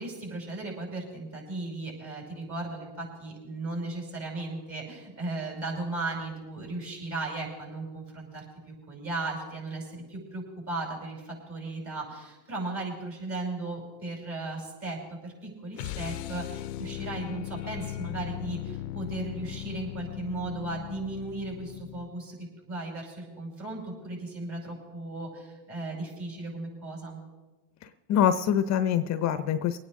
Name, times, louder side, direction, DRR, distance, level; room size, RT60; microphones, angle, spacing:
voice 1, 0.0-27.2, right 2 dB, 40° right, -1 dB, 5.8 m, -36 dB
sound 1, 15.8-22.2, left 15 dB, 85° left, 0.6 m, -38 dB
voice 2, 27.8-29.8, left 9 dB, 40° left, 11 dB, 0.6 m, -25 dB
24.0 x 9.4 x 3.6 m, 1.2 s
supercardioid pair, 105°, 46 cm